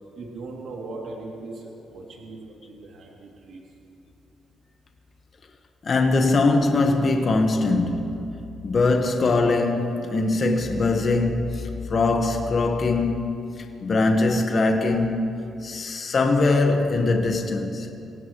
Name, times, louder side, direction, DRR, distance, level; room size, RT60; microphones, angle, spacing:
voice 1, 0.2-1.6 1.9-3.6, right 3 dB, 70° right, 2.8 m, -38 dB
voice 2, 5.8-8.3 8.6-13.3 13.8-17.9, left 3 dB, 45° left, 1.4 m, -22 dB
25.5 x 17.5 x 3.2 m
cardioid pair, 90°, 0 cm